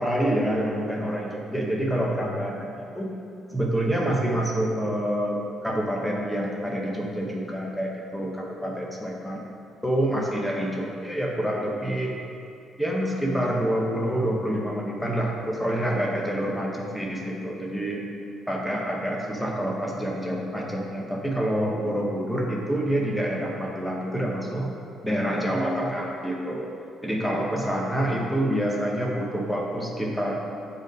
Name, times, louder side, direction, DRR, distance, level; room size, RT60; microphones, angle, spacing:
voice 1, 0.0-3.1 3.5-9.4 9.8-12.1 12.8-18.0 18.5-24.7 25.0-26.7 27.0-30.3, right 1 dB, 5° left, -2 dB, 0.8 m, -27 dB
7.8 x 3.9 x 5.2 m, 2.5 s
cardioid pair, 170°, 0 cm